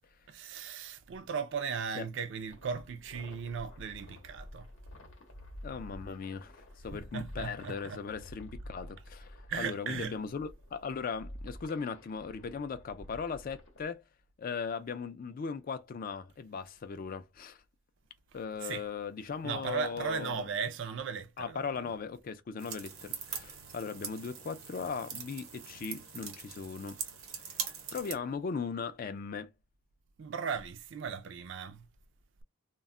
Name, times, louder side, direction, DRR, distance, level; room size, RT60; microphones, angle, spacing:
voice 1, 0.3-4.7 6.9-8.0 9.5-10.1 18.6-18.8 19.4-21.8 30.2-31.9, right 6 dB, 60° right, 0.4 m, -37 dB
sound 1, 2.5-13.9, equal, 70° left, 0.7 m, -49 dB
voice 2, 5.6-6.6 6.8-14.0 14.4-17.6 18.3-20.5 21.4-27.0 27.5-27.6 27.9-29.5, left 5 dB, 45° left, 0.3 m, -38 dB
sound 2, 22.6-28.2, right 7 dB, 85° right, 0.7 m, -42 dB
2.2 x 2.0 x 3.6 m
head